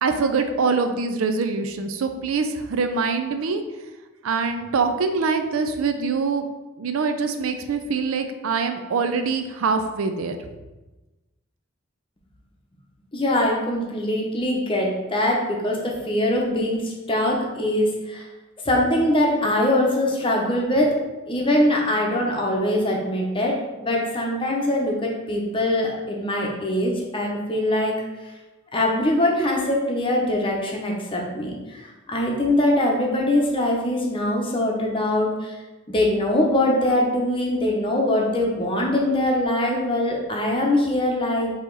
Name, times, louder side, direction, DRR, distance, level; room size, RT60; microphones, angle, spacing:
voice 1, 0.0-3.6 4.2-6.4 6.8-10.4, right 4 dB, 75° right, 7 dB, 0.4 m, -24 dB
voice 2, 13.1-18.3 18.6-21.0 21.3-27.9 28.7-35.6 35.9-41.5, left 1 dB, 25° left, -1 dB, 0.7 m, -22 dB
4.7 x 2.9 x 3.9 m, 1.1 s
head